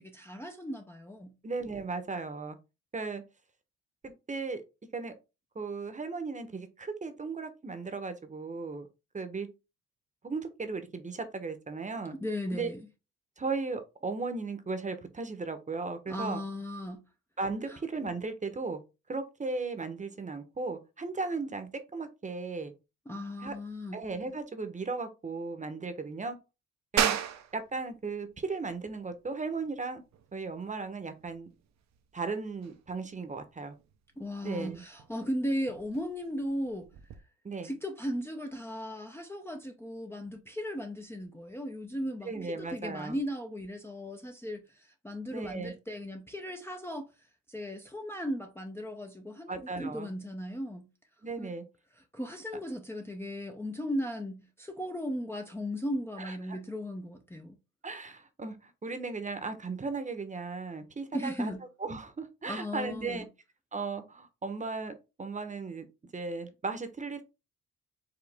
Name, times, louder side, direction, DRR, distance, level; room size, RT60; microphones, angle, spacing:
voice 1, 0.0-1.3 12.2-12.8 16.1-17.0 17.7-17.8 23.1-24.0 34.2-36.9 37.6-47.1 47.5-50.9 51.4-51.5 52.1-57.6 61.1-61.6 62.5-63.2, equal, 10° left, 0.6 m, -36 dB
voice 2, 1.4-2.6 2.9-3.2 4.0-4.6 4.9-5.1 5.5-8.9 9.1-9.5 10.2-12.1 12.5-12.7 13.4-16.4 17.4-18.8 19.1-22.7 23.4-23.5 23.9-26.4 26.9-27.2 27.5-30.0 30.3-31.5 32.1-33.8 34.4-34.8 37.4-37.7 42.2-43.2 45.3-45.7 49.5-50.1 51.2-51.6 56.2-56.6 57.8-61.5 61.8-63.3 63.7-65.9 66.1-67.2, right 4 dB, 25° right, 0.9 m, -36 dB
sound 1, 27.0-37.2, right 9 dB, 60° right, 0.7 m, -38 dB
5.0 x 3.1 x 3.4 m
cardioid pair, 90°, 30 cm